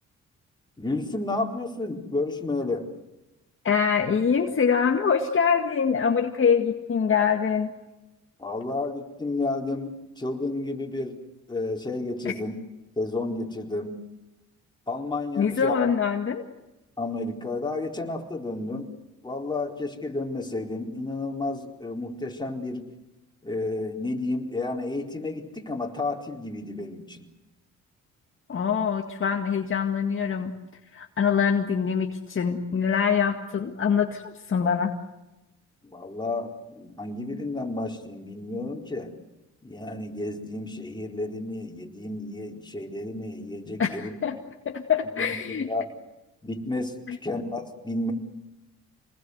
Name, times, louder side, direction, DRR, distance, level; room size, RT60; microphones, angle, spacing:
voice 1, 0.8-2.9 8.4-11.2 11.5-12.6 13.0-14.0 14.9-15.9 17.0-18.9 19.2-22.9 23.4-27.3 35.8-39.1 39.6-44.1 45.2-45.4 45.7-45.9 46.4-48.1, left 2 dB, 15° left, 1 dB, 4.4 m, -31 dB
voice 2, 3.6-7.7 12.3-12.4 15.4-16.4 28.5-30.5 30.9-34.9 43.8-44.4 44.7-45.7 47.1-47.2, left 6 dB, 45° left, 3 dB, 2.0 m, -24 dB
27.0 x 20.5 x 8.1 m, 1.0 s
cardioid pair, 90°, 30 cm